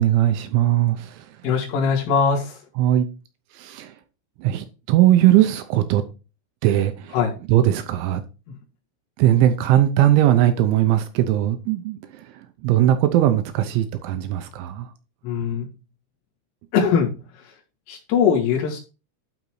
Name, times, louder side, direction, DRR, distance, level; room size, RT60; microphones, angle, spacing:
voice 1, 0.0-1.3 2.8-3.1 3.5-3.9 4.4-6.0 6.6-7.2 7.5-8.2 9.2-14.9, right 12 dB, 85° right, 2.9 m, -19 dB
voice 2, 1.4-2.6 7.1-7.4 15.2-15.7 16.7-17.5 17.9-18.8, left 6 dB, 75° left, 4.6 m, -21 dB
12.0 x 4.1 x 4.7 m
omnidirectional pair, 5.8 m